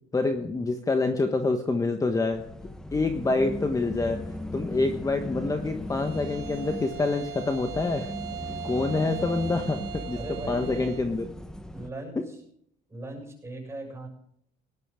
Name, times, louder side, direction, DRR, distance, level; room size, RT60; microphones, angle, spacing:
voice 1, 0.1-2.4 2.9-4.2 4.5-8.1 8.6-10.2 10.5-11.3, left 3 dB, 20° left, 6 dB, 1.3 m, -26 dB
sound 1, 2.3-11.9, left 1 dB, 5° left, 1.0 m, -37 dB
Bowed string instrument, 5.9-11.1, right 9 dB, 85° right, 4.6 m, -40 dB
voice 2, 10.1-10.7 11.7-12.4 12.9-14.1, right 2 dB, 15° right, 1 dB, 6.9 m, -38 dB
18.0 x 12.5 x 3.8 m, 0.69 s
cardioid pair, 110°, 17 cm